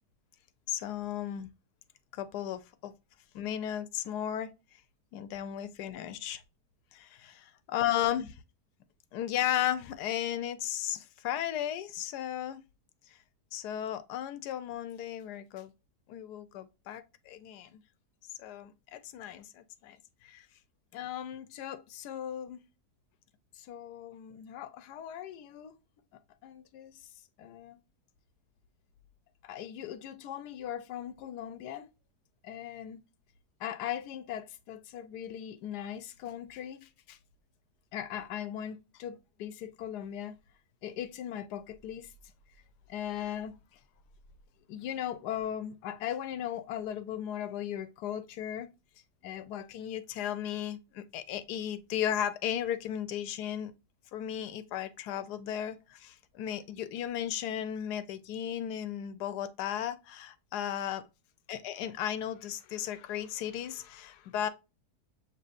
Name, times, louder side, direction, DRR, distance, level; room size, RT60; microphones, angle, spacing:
voice 1, 0.7-1.5 2.1-2.9 3.3-4.5 5.1-6.4 6.9-8.4 9.1-12.6 13.5-15.7 16.1-17.8 18.4-20.0 20.2-20.5 20.9-22.6 23.6-25.7 26.4-27.0 27.4-27.8 29.4-31.9 32.4-33.0 33.6-37.2 37.9-40.3 40.8-42.1 42.9-43.5 44.7-48.7 49.2-53.7 54.1-61.0 61.5-64.5, left 10 dB, 80° left, 1.2 m, -36 dB
6.8 x 3.0 x 2.5 m
omnidirectional pair, 1.7 m